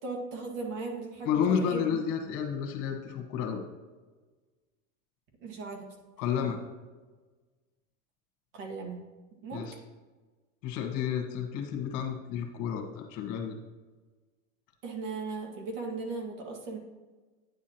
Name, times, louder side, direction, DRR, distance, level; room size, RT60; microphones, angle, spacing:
voice 1, 0.0-2.0 5.4-5.9 8.5-9.0 9.3-9.6 14.8-16.8, right 3 dB, 70° right, 2 dB, 2.0 m, -37 dB
voice 2, 1.2-3.6 6.2-6.6 9.5-9.7 10.6-13.6, left 8 dB, 50° left, 3 dB, 1.5 m, -31 dB
9.5 x 7.2 x 2.9 m, 1.3 s
supercardioid pair, 135°, 39 cm